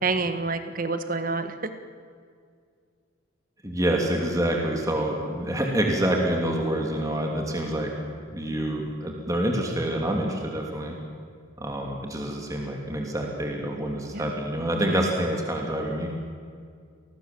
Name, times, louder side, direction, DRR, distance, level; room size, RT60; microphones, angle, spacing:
voice 1, 0.0-1.7 14.1-14.3, right 3 dB, 40° right, 10 dB, 1.5 m, -28 dB
voice 2, 3.6-7.9 8.3-11.0 11.6-16.1, right 1 dB, 15° right, 1 dB, 3.0 m, -27 dB
29.5 x 20.0 x 7.7 m, 2.1 s
head